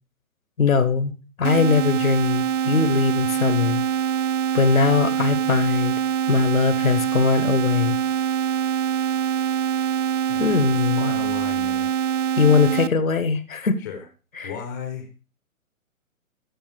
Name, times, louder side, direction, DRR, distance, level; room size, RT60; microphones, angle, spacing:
voice 1, 0.6-1.1 1.4-3.8 4.5-5.9 6.3-7.9 10.4-11.1 12.4-13.8 14.4-14.5, left 5 dB, 70° left, 14 dB, 1.1 m, -20 dB
sound 1, 1.4-12.9, right 9 dB, 60° right, 0.5 m, -24 dB
voice 2, 10.3-11.9 13.8-14.1 14.4-15.1, left 6 dB, 15° left, 6 dB, 0.5 m, -35 dB
12.5 x 5.1 x 3.2 m, 0.34 s
figure-of-eight pair, 125°, 42 cm